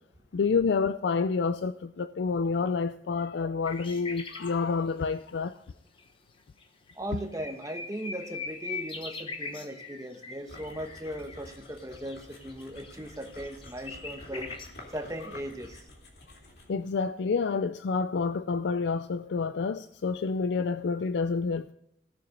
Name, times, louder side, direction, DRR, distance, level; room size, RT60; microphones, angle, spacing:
voice 1, 0.3-5.6 16.7-21.7, left 4 dB, 85° left, 0.4 m, -28 dB
sound 1, 3.6-4.6 6.0-6.1 6.6-6.7 6.9-15.8, left 4 dB, 30° left, 1.1 m, -42 dB
voice 2, 7.0-14.5 14.9-15.8, right 1 dB, 20° right, 1.1 m, -38 dB
sound 2, 10.5-16.8, left 1 dB, 65° left, 2.7 m, -50 dB
16.0 x 7.0 x 5.2 m
head